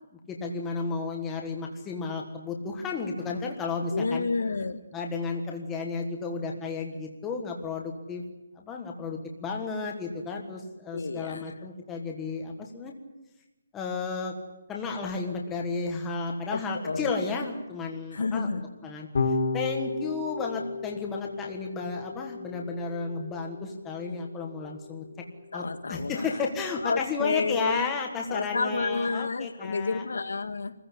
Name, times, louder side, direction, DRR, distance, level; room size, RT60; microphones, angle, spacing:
voice 1, 0.1-4.3 4.9-8.2 8.6-12.9 13.7-14.3 14.7-19.1 19.5-25.0 25.5-30.0, left 4 dB, 5° left, 1 dB, 1.6 m, -33 dB
voice 2, 3.9-4.8 10.9-11.5 16.5-17.2 18.1-18.6 25.5-26.4 26.8-27.8 28.3-30.7, left 4 dB, 90° left, 8 dB, 2.0 m, -30 dB
Electric guitar / Bass guitar, 19.1-25.5, left 3 dB, 45° left, 2.9 m, -34 dB
25.5 x 15.0 x 10.0 m, 1.0 s
hypercardioid pair, 180°, 0 cm